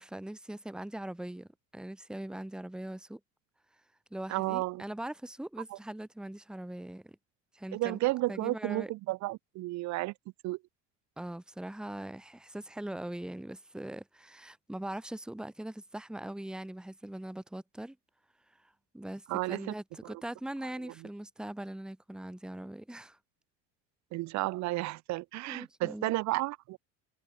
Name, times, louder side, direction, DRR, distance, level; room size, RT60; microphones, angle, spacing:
voice 1, 0.0-1.5 1.7-3.2 4.1-7.2 7.5-8.0 8.3-8.9 11.2-18.0 18.5-23.2 25.5-26.1, right 1 dB, ahead, 2.9 m, -41 dB
voice 2, 4.3-4.8 7.7-10.1 10.4-10.6 19.3-19.7 20.0-20.1 24.1-26.8, right 20 dB, 55° right, 3.7 m, -32 dB
cardioid pair, 180°, 33 cm